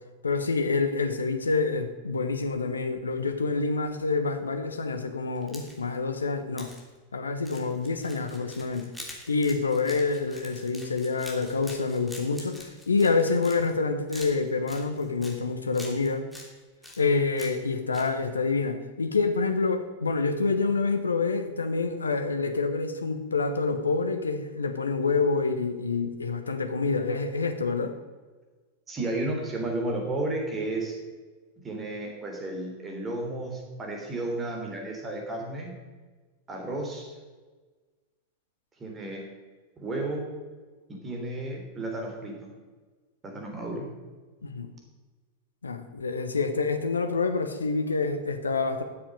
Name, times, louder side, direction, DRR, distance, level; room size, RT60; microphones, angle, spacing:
voice 1, 0.2-6.7 7.1-8.9 9.3-16.3 17.0-28.0 44.4-44.7 45.6-48.8, left 4 dB, 75° left, 8 dB, 1.1 m, -27 dB
sound 1, 5.3-6.0 6.6-6.8 7.4-13.8 14.1-15.4 15.7-16.5 16.8-17.7 17.9-18.1, left 1 dB, ahead, 3.0 m, -45 dB
voice 2, 28.9-31.0 31.6-35.7 36.5-37.1 38.8-39.2 39.8-40.3 40.9-42.5 43.2-43.9, right 2 dB, 20° right, 1 dB, 3.4 m, -32 dB
12.5 x 7.3 x 6.6 m, 1.3 s
figure-of-eight pair, 90°, 0 cm